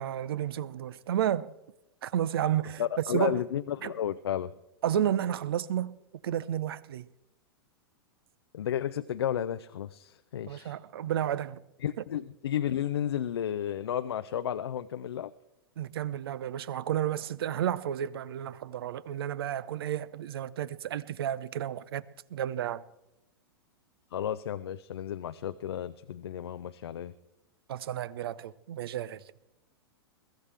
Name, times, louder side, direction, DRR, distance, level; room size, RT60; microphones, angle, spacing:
voice 1, 0.0-1.5 2.0-2.8 3.1-3.4 3.8-3.9 4.8-6.0 6.2-7.1 10.5-11.6 15.8-22.0 22.3-22.8 27.7-29.2, right 10 dB, 65° right, 0.7 m, -31 dB
voice 2, 2.8-4.5 8.5-10.8 11.8-15.3 24.1-27.1, left 10 dB, 75° left, 0.5 m, -32 dB
22.0 x 14.0 x 3.4 m
hypercardioid pair, 105°, 13 cm